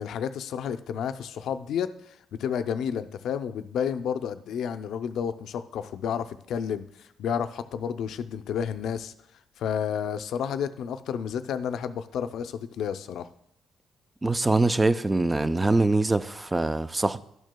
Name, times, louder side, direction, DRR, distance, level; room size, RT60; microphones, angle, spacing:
voice 1, 0.0-9.1 9.6-13.3, left 8 dB, 75° left, 0.5 m, -31 dB
voice 2, 14.2-17.2, right 2 dB, 20° right, 0.4 m, -23 dB
12.0 x 6.3 x 2.2 m
cardioid pair, 90°, 0 cm